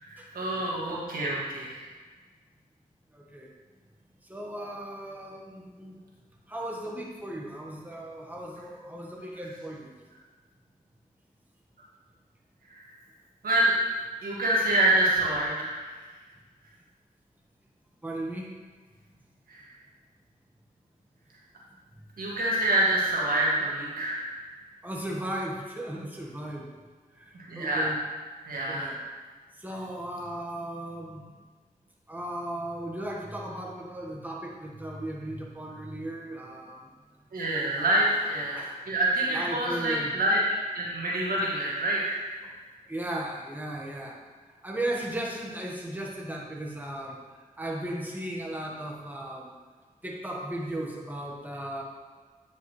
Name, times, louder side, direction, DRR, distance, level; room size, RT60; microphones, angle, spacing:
voice 1, 0.0-1.9 12.7-12.8 13.4-13.8 14.2-15.8 19.5-19.6 22.2-24.3 27.3-27.9 28.5-28.9 37.3-40.4 40.7-42.2, right 1 dB, 75° right, -5 dB, 1.9 m, -26 dB
voice 2, 3.1-3.5 4.3-6.0 6.5-9.9 18.0-18.5 24.8-26.7 27.6-28.0 28.7-28.9 29.6-31.2 32.1-36.8 37.8-38.8 39.3-40.1 42.4-42.5 42.9-44.2 44.6-47.2 47.6-49.5 50.0-51.8, right 1 dB, 10° right, -2 dB, 1.4 m, -36 dB
9.2 x 5.5 x 3.3 m, 1.4 s
cardioid pair, 45°, 15 cm